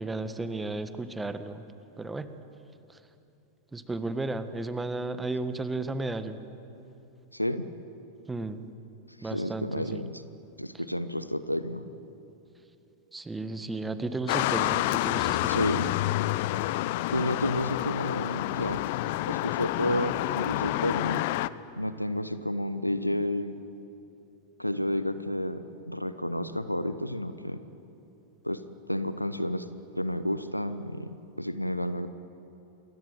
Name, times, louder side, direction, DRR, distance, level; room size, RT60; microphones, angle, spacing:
voice 1, 0.0-1.6 2.0-2.3 3.7-6.4 8.3-8.7 9.2-10.0 13.1-15.7, right 2 dB, 10° right, 10 dB, 1.6 m, -34 dB
voice 2, 7.3-7.7 9.2-10.2 10.6-11.8 15.4-15.9 17.1-21.2 21.8-23.6 24.6-27.6 28.4-29.7 30.0-32.1, left 1 dB, 90° left, 13 dB, 1.0 m, -31 dB
sound 1, 14.3-21.5, left 17 dB, 50° left, 0.7 m, -28 dB
28.0 x 22.0 x 9.2 m, 2.8 s
figure-of-eight pair, 90°, 0 cm